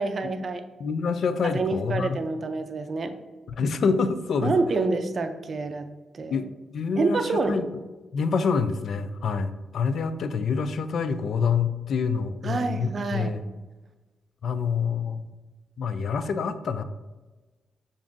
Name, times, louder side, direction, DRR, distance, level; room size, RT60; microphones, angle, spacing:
voice 1, 0.0-0.6 1.5-3.2 4.4-5.9 6.1-6.4 7.0-7.7 12.4-13.3, right 3 dB, 45° right, 7 dB, 0.4 m, -27 dB
voice 2, 0.8-2.2 3.6-4.5 6.3-6.4 6.7-7.2 7.5-7.6 8.1-13.4 14.4-15.3 15.8-16.8, left 5 dB, 65° left, 11 dB, 0.3 m, -26 dB
6.9 x 2.6 x 2.5 m, 1.2 s
cardioid pair, 100°, 0 cm